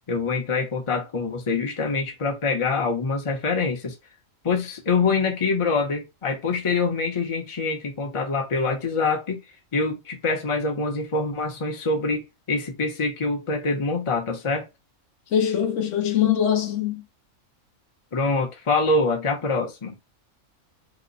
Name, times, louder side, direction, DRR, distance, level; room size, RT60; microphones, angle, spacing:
voice 1, 0.1-3.9 4.4-9.4 9.7-14.7 18.1-20.0, left 3 dB, 30° left, 0.7 m, -25 dB
voice 2, 15.3-17.0, left 9 dB, 70° left, 0.9 m, -22 dB
3.0 x 2.1 x 3.9 m
omnidirectional pair, 1.4 m